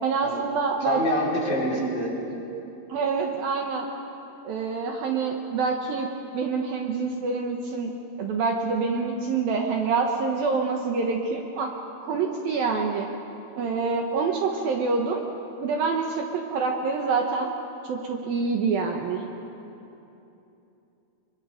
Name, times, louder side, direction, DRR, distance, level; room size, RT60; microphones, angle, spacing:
voice 1, 0.0-1.0 1.4-1.6 2.9-3.9 4.4-6.1 6.3-7.9 8.2-11.7 12.0-13.1 13.5-15.2 15.6-17.5 17.9-19.2, right 4 dB, 65° right, 2 dB, 2.8 m, -26 dB
voice 2, 0.8-2.1, left 1 dB, 25° left, -5 dB, 5.2 m, -26 dB
27.5 x 23.5 x 5.2 m, 2.9 s
omnidirectional pair, 4.9 m